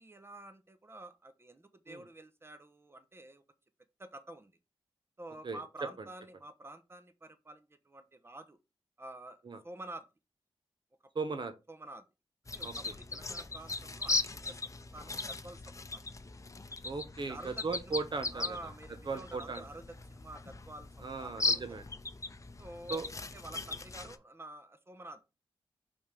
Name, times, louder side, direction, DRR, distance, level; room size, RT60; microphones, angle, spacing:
voice 1, 0.0-3.4 4.0-4.5 5.2-8.6 9.0-9.4 9.6-10.1 11.7-12.0 12.5-16.1 17.3-18.0 18.3-21.9 22.6-23.0 23.3-25.2, right 1 dB, 25° right, 1.0 m, -49 dB
voice 2, 5.4-5.9 9.4-9.6 11.1-11.5 12.6-12.9 16.8-18.6 19.1-19.6 21.0-21.9 22.9-23.1, right 4 dB, 50° right, 0.9 m, -37 dB
sound 1, 12.5-24.2, left 3 dB, 30° left, 0.7 m, -38 dB
5.1 x 3.6 x 5.1 m
cardioid pair, 50°, 10 cm